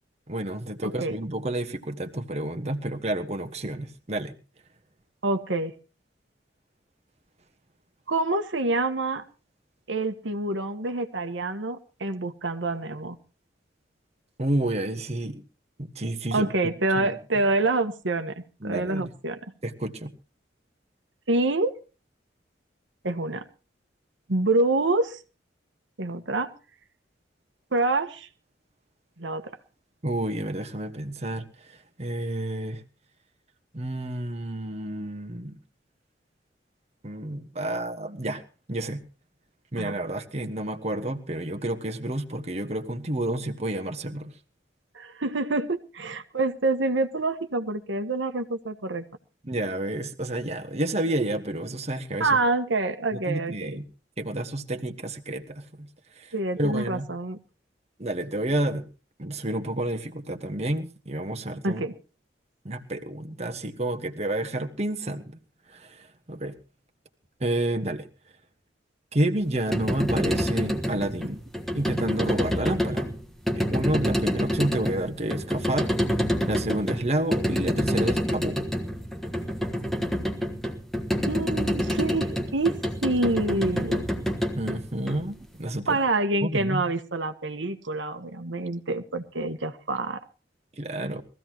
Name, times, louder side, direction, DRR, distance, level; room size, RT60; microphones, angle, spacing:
voice 1, 0.3-4.3 14.4-15.4 15.8-16.5 16.9-17.2 18.6-19.1 19.6-20.1 30.0-32.8 33.7-35.6 37.0-38.4 38.7-39.0 39.7-44.3 49.4-52.4 53.1-53.8 54.2-55.9 56.1-57.1 58.0-58.8 59.2-61.8 62.6-65.4 65.7-66.6 67.4-68.1 69.1-71.4 71.7-73.1 73.6-75.9 76.5-78.6 84.5-86.0 86.4-86.8 90.8-91.2, right 1 dB, 35° right, 6 dB, 1.4 m, -30 dB
voice 2, 0.8-1.1 5.2-5.7 8.1-9.2 9.9-13.2 16.3-19.4 21.3-21.8 23.0-23.4 24.3-25.2 26.0-26.5 27.7-28.3 29.2-29.5 39.8-40.0 44.9-49.0 52.2-53.8 56.3-57.4 61.6-61.9 81.3-82.7 83.0-84.0 85.9-90.2, right 2 dB, 85° right, 7 dB, 1.4 m, -27 dB
sound 1, 69.5-85.7, equal, ahead, 1.4 m, -27 dB
22.0 x 15.0 x 3.0 m, 0.34 s
head